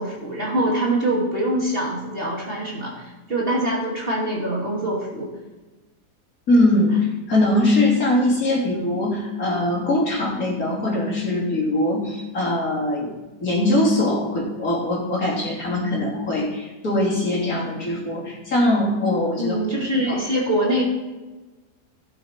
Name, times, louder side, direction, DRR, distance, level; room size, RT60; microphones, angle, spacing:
voice 1, 0.0-5.3 19.4-20.8, right 1 dB, 35° right, -4 dB, 2.6 m, -24 dB
voice 2, 6.5-6.9 7.3-13.1 13.4-19.6 20.1-20.2, left 1 dB, 60° left, -5 dB, 3.6 m, -21 dB
16.0 x 6.9 x 4.4 m, 1.2 s
omnidirectional pair, 1.7 m